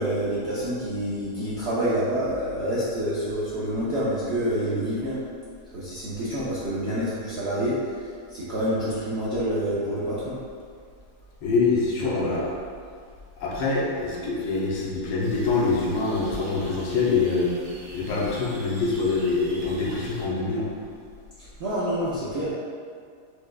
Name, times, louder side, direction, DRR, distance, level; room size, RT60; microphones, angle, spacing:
voice 1, 0.0-5.2 5.7-10.4 12.2-12.4 21.4-22.5, equal, 70° right, -10 dB, 0.6 m, -27 dB
voice 2, 11.4-12.5 13.4-17.5 17.9-20.7, left 4 dB, 80° left, -4 dB, 1.2 m, -25 dB
sound 1, 15.2-20.3, right 2 dB, 85° right, 1.2 m, -45 dB
4.6 x 2.2 x 2.2 m, 2.1 s
omnidirectional pair, 1.7 m